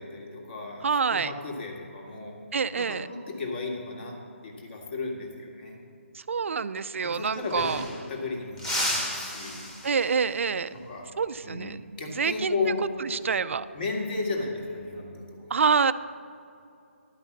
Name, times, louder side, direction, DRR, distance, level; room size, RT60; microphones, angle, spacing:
voice 1, 0.0-2.4 2.8-4.2 4.4-5.8 7.0-9.7 10.7-11.1 11.4-12.9 13.7-15.5, left 3 dB, 45° left, 0 dB, 1.9 m, -34 dB
voice 2, 0.8-1.3 2.5-3.1 6.1-7.8 9.8-10.7 11.2-11.8 12.2-12.6 13.0-13.7 15.5-15.9, right 5 dB, 65° right, 15 dB, 0.4 m, -26 dB
sound 1, 7.0-7.1 7.3-8.2 8.6-10.3 12.8-13.1 14.5-15.0, equal, 5° left, 1.1 m, -33 dB
11.5 x 5.8 x 7.2 m, 2.6 s
hypercardioid pair, 160°, 7 cm